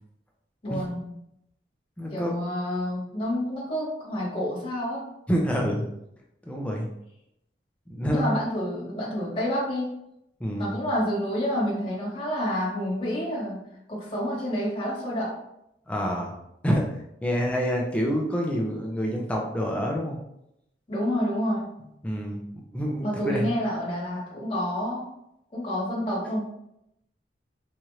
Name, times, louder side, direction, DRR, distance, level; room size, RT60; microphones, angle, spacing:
voice 1, 0.6-1.2 2.1-5.1 8.1-9.9 10.6-13.6 13.9-15.4 20.9-21.7 23.0-25.0 25.5-26.4, equal, 30° left, -5 dB, 1.3 m, -28 dB
voice 2, 2.0-2.3 5.3-5.8 6.5-6.9 7.9-8.3 10.4-10.7 15.9-16.3 16.6-17.0 17.2-20.2 22.0-22.4 22.7-23.5, equal, 5° left, -1 dB, 0.5 m, -27 dB
4.3 x 2.5 x 3.1 m, 0.80 s
head